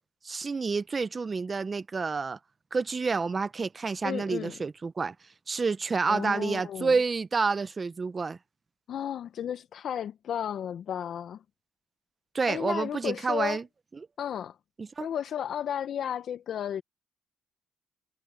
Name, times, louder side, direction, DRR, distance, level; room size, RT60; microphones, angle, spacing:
voice 1, 0.2-2.4 2.7-5.1 5.5-8.4 12.3-13.6 14.8-15.1, right 4 dB, 30° right, 0.7 m, -29 dB
voice 2, 4.0-4.6 6.1-6.9 8.9-11.4 12.5-13.6 14.2-14.6 15.0-16.8, left 9 dB, 65° left, 0.6 m, -33 dB
cardioid pair, 90°, 0 cm